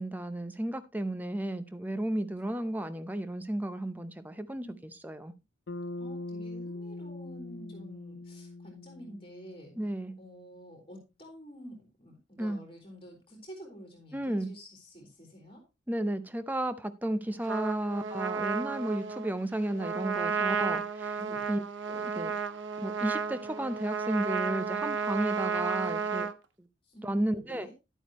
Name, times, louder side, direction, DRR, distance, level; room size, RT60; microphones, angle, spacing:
voice 1, 0.0-4.8 5.0-5.3 9.8-10.1 12.4-12.6 14.1-14.5 15.9-21.2 21.5-21.6 21.9-22.3 22.8-26.3 27.0-27.7, right 1 dB, 10° right, 0.6 m, -33 dB
Bass guitar, 5.7-10.0, left 2 dB, 65° left, 0.7 m, -42 dB
voice 2, 6.0-9.7 10.2-15.6 21.2-21.5 26.9-27.7, equal, 30° left, 3.6 m, -48 dB
Trumpet, 17.5-26.3, right 5 dB, 75° right, 0.7 m, -32 dB
11.0 x 8.5 x 3.0 m
head